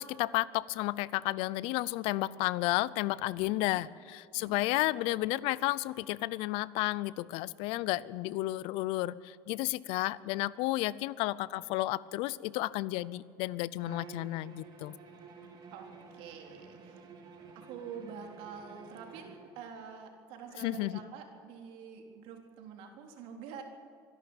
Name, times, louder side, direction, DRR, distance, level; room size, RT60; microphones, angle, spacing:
voice 1, 0.0-15.0 20.6-21.0, left 18 dB, 70° left, 20 dB, 0.6 m, -32 dB
Bowed string instrument, 13.8-19.6, right 5 dB, 45° right, 3.4 m, -51 dB
voice 2, 15.7-17.1 17.6-23.6, right 6 dB, 70° right, 3 dB, 3.8 m, -47 dB
24.5 x 12.0 x 9.0 m, 2.5 s
cardioid pair, 135°, 10 cm